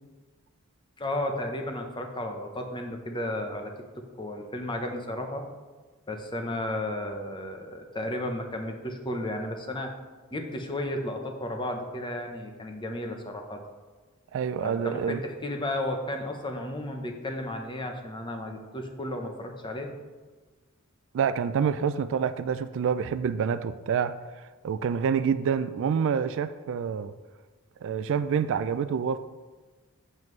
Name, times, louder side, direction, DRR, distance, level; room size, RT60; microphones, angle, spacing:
voice 1, 1.0-3.7 4.2-5.5 6.1-9.9 10.3-13.6 14.6-19.9, left 1 dB, 20° left, 4 dB, 0.8 m, -33 dB
voice 2, 14.3-15.2 21.1-24.1 24.6-27.1 27.8-29.2, right 7 dB, 60° right, 13 dB, 0.3 m, -27 dB
7.5 x 7.2 x 3.2 m, 1.3 s
head